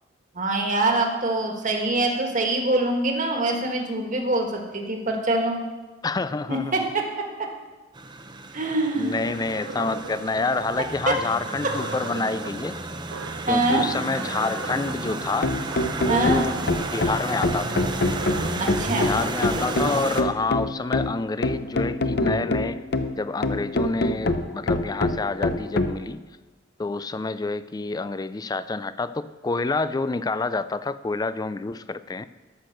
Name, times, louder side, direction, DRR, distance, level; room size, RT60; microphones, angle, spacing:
voice 1, 0.3-5.6 6.5-7.0 8.5-9.2 11.1-11.2 13.4-13.9 16.1-16.4 18.6-19.1, right 2 dB, 40° right, 2 dB, 1.6 m, -24 dB
voice 2, 6.0-6.8 9.0-12.7 13.5-15.5 16.0-16.6 16.9-17.9 18.9-22.8 23.2-26.2 26.8-32.3, left 3 dB, 20° left, 14 dB, 0.3 m, -28 dB
sound 1, 7.9-20.2, right 2 dB, 25° right, 0.7 m, -32 dB
sound 2, 9.2-10.9 11.6-12.5 13.1-13.5 14.0-14.9 15.7-16.6 17.7-18.5, right 4 dB, 90° right, 0.9 m, -38 dB
sound 3, 15.1-26.0, left 2 dB, 60° left, 0.6 m, -26 dB
13.0 x 6.0 x 6.5 m, 1.2 s
head